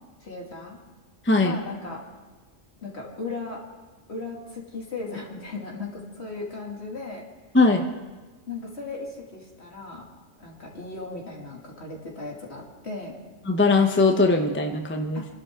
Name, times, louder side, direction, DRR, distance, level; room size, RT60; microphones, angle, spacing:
voice 1, 0.2-0.8 1.4-2.0 2.8-3.6 4.1-7.2 8.5-10.0 10.4-13.2 15.1-15.3, left 3 dB, 55° left, -2 dB, 3.0 m, -36 dB
voice 2, 13.5-15.2, left 3 dB, 10° left, 3 dB, 0.9 m, -20 dB
29.0 x 12.0 x 3.8 m, 1.2 s
omnidirectional pair, 1.4 m